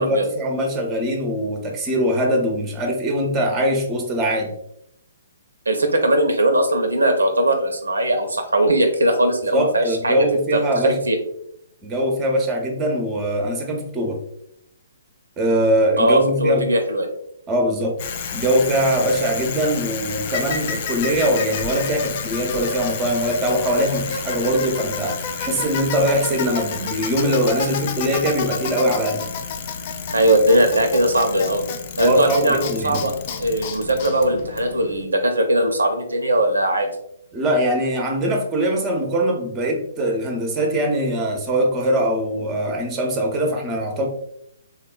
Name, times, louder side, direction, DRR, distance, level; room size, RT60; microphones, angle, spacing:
voice 1, 0.0-4.5 9.5-11.0 11.8-14.2 15.4-16.6 17.5-18.0 18.3-29.3 32.0-33.1 37.3-44.1, right 1 dB, 20° right, 2 dB, 0.6 m, -22 dB
voice 2, 5.7-10.2 10.5-11.2 16.0-17.1 30.1-31.6 32.0-33.1 33.4-36.9, right 1 dB, 85° right, 5 dB, 0.5 m, -19 dB
Bicycle, 18.0-35.0, left 6 dB, 40° left, 0.4 m, -30 dB
3.5 x 2.2 x 2.2 m, 0.74 s
figure-of-eight pair, 130°, 0 cm